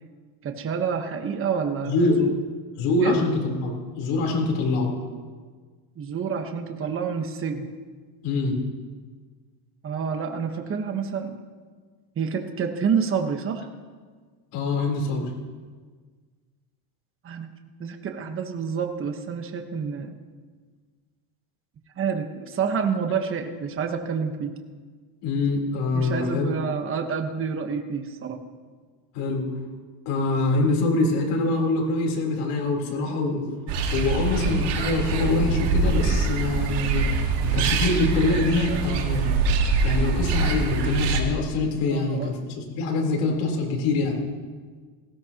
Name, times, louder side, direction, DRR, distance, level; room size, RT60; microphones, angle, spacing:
voice 1, 0.4-1.9 2.2-2.3 3.0-3.2 6.0-7.7 9.8-11.4 12.2-13.7 17.2-17.5 17.8-20.1 22.0-24.5 25.9-28.4 41.9-42.3, right 6 dB, 25° right, 5 dB, 1.2 m, -28 dB
voice 2, 1.9-2.2 2.8-4.9 8.2-8.6 14.5-15.3 25.2-26.6 29.1-29.5 30.1-33.4 33.9-37.1 37.4-39.3 39.8-44.2, left 2 dB, 75° left, 0 dB, 3.9 m, -24 dB
sound 1, 33.7-41.2, right 4 dB, 55° right, 1.9 m, -24 dB
18.5 x 16.0 x 3.0 m, 1.5 s
cardioid pair, 140°, 49 cm